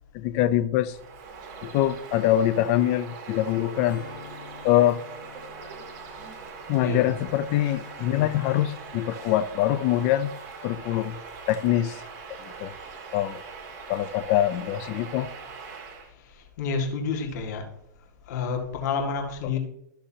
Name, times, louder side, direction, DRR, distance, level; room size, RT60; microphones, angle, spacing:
voice 1, 0.1-1.0 1.6-4.0 4.6-5.0 6.7-10.3 10.6-11.2 11.5-12.0 12.3-12.7 13.1-13.4 13.9-15.3, left 12 dB, 45° left, 0.6 m, -24 dB
Bird vocalization bird call bird song, 0.8-16.1, right 5 dB, 50° right, 2.3 m, -42 dB
Strum, 3.9-9.2, left 6 dB, 80° left, 1.6 m, -49 dB
voice 2, 6.7-7.1 16.3-17.6 18.3-19.6, left 4 dB, 65° left, 2.1 m, -29 dB
13.5 x 6.6 x 2.9 m
hypercardioid pair, 130°, 10 cm